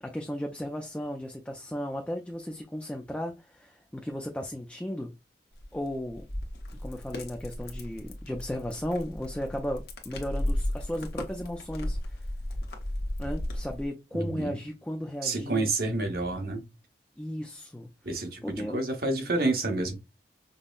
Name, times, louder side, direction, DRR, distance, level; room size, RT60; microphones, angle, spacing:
voice 1, 0.0-5.1 5.7-6.2 6.8-12.2 13.2-15.7 17.2-17.9 18.4-18.8, equal, 5° left, 0.3 m, -35 dB
sound 1, 5.5-13.9, left 1 dB, 60° left, 0.9 m, -35 dB
voice 2, 14.1-14.6 15.2-16.7 18.0-20.0, right 2 dB, 55° right, 1.0 m, -29 dB
5.3 x 2.0 x 2.4 m
head